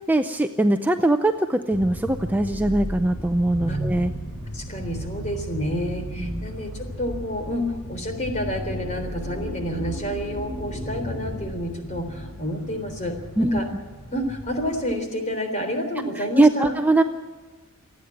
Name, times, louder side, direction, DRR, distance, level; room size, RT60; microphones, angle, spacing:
voice 1, 0.0-4.1 6.2-6.5 13.4-13.6 16.2-17.0, right 2 dB, 10° right, 7 dB, 0.6 m, -21 dB
sound 1, 1.7-14.8, equal, 70° left, 4.6 m, -34 dB
voice 2, 4.5-13.2 13.5-13.7 14.1-16.7, equal, 35° left, 5 dB, 3.6 m, -29 dB
27.5 x 9.5 x 10.0 m, 1.4 s
head